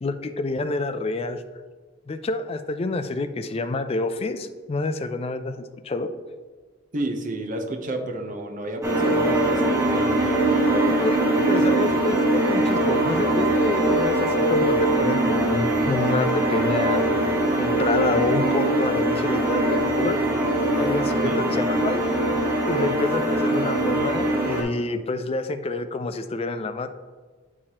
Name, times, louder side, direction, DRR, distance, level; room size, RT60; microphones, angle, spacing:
voice 1, 0.0-1.4 2.1-6.1 10.8-17.0 17.6-20.2 20.8-22.0 22.7-26.9, left 3 dB, 30° left, 10 dB, 0.3 m, -28 dB
voice 2, 6.9-11.9 21.2-21.6, right 1 dB, 40° right, 2 dB, 0.8 m, -32 dB
sound 1, 8.8-24.6, right 1 dB, 15° right, 1.3 m, -22 dB
8.5 x 4.7 x 2.9 m, 1.4 s
head